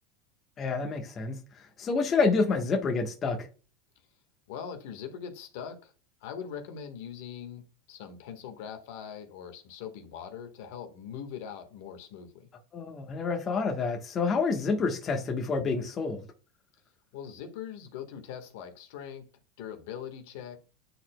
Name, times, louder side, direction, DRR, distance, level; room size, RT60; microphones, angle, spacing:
voice 1, 0.6-3.5 12.7-16.2, left 4 dB, 30° left, 1.2 m, -28 dB
voice 2, 4.5-5.9 6.2-7.6 7.9-12.5 17.1-19.3 19.6-20.6, left 8 dB, 70° left, 1.4 m, -41 dB
9.9 x 4.5 x 2.2 m
supercardioid pair, 115°, 0 cm